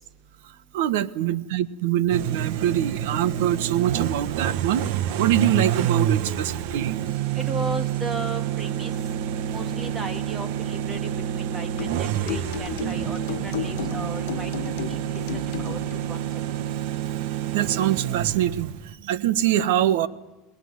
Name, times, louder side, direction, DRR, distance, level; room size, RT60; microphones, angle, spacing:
voice 1, 0.7-4.8 5.2-7.0 17.5-18.7 19.0-20.1, right 11 dB, 80° right, 15 dB, 1.3 m, -24 dB
sound 1, 2.1-18.9, right 10 dB, 60° right, 1.3 m, -28 dB
voice 2, 7.3-8.9 9.5-15.2 15.6-15.8 16.1-16.2, right 1 dB, 15° right, 8 dB, 2.0 m, -35 dB
sound 2, 11.8-16.1, left 14 dB, 85° left, 1.3 m, -34 dB
26.5 x 20.0 x 9.7 m, 1.1 s
cardioid pair, 175°, 0 cm